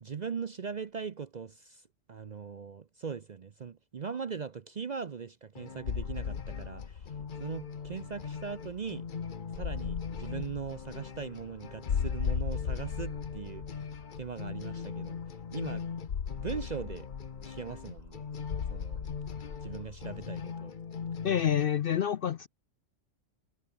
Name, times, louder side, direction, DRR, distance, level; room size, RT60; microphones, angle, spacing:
voice 1, 0.0-1.8 2.1-7.1 7.4-9.1 9.5-13.8 14.2-15.2 15.5-15.9 16.4-17.1 17.4-18.2 18.7-19.0 19.6-20.7, right 6 dB, 45° right, 0.6 m, -40 dB
sound 1, 5.6-21.6, left 6 dB, 40° left, 1.1 m, -41 dB
sound 2, 5.8-20.3, left 7 dB, 85° left, 1.7 m, -37 dB
voice 2, 21.2-22.5, left 9 dB, 60° left, 0.6 m, -28 dB
omnidirectional pair, 1.3 m